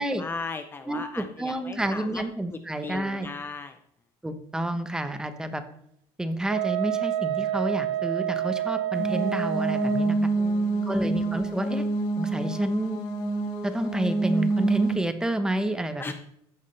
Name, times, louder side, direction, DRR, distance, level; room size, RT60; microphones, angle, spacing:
voice 1, 0.0-2.2 2.8-3.8 10.4-11.0 16.0-16.1, left 4 dB, 20° left, 8 dB, 0.7 m, -37 dB
voice 2, 0.9-3.3 4.2-5.6 6.2-10.3 10.9-11.8 12.2-13.0 13.6-16.1, right 1 dB, 5° right, 9 dB, 1.0 m, -29 dB
Wind instrument woodwind instrument, 6.5-10.2, right 12 dB, 80° right, 1.1 m, -28 dB
sound 1, 9.0-14.9, right 2 dB, 90° left, 2.5 m, -27 dB
14.0 x 11.0 x 3.4 m, 0.72 s
cardioid pair, 155°, 11 cm